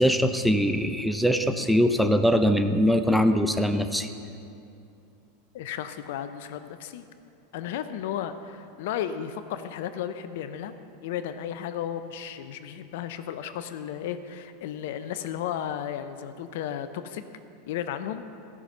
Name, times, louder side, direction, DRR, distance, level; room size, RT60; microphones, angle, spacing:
voice 1, 0.0-4.1, equal, ahead, 7 dB, 0.6 m, -22 dB
voice 2, 5.5-7.0 7.5-10.7 11.0-17.2 17.7-18.2, left 9 dB, 70° left, 11 dB, 0.5 m, -34 dB
14.5 x 6.0 x 5.5 m, 2.6 s
hypercardioid pair, 95°, 0 cm